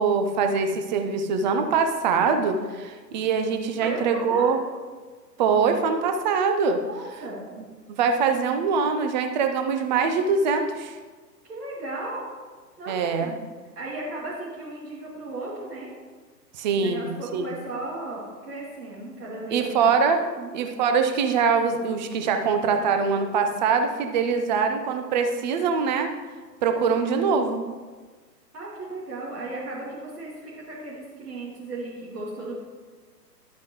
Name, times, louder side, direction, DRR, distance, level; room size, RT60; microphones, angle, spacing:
voice 1, 0.0-4.6 5.4-6.8 7.9-10.9 12.9-13.3 16.6-17.5 19.5-20.2 20.5-26.1 26.6-27.6, right 5 dB, 25° right, 6 dB, 0.7 m, -23 dB
voice 2, 3.8-4.6 6.8-7.4 11.5-12.2 12.8-13.4 13.8-15.9 16.7-20.6 27.2-27.4 28.5-32.5, right 2 dB, 65° right, -7 dB, 2.6 m, -36 dB
11.5 x 8.4 x 3.1 m, 1.4 s
figure-of-eight pair, 115°, 50 cm